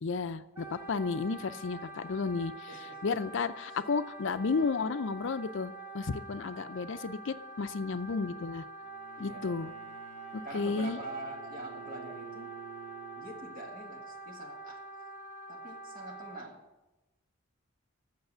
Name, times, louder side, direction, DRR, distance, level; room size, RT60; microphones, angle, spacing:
voice 1, 0.0-8.6 9.2-9.7 10.3-11.0, left 4 dB, 60° left, 13 dB, 0.5 m, -33 dB
Wind instrument woodwind instrument, 0.5-16.4, right 2 dB, 10° right, 1.4 m, -46 dB
voice 2, 2.7-3.2 6.5-6.7 9.2-9.5 10.4-12.5 13.2-14.8 15.5-16.6, right 1 dB, 45° right, 1 dB, 1.8 m, -45 dB
Bowed string instrument, 8.8-14.1, right 7 dB, 85° right, 0.8 m, -50 dB
8.0 x 6.8 x 7.9 m, 1.1 s
head